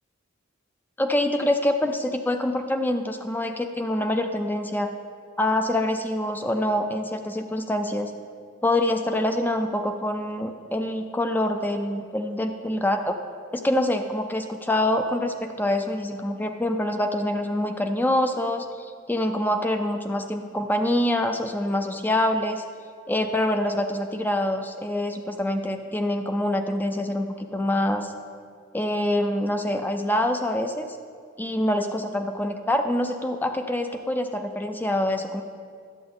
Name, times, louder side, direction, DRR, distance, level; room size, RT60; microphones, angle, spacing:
voice 1, 1.0-4.9 5.4-8.1 8.6-13.2 13.5-22.6 23.1-28.1 28.7-30.9 31.4-35.4, left 1 dB, 10° left, 6 dB, 0.3 m, -25 dB
11.0 x 7.8 x 3.9 m, 2.1 s
head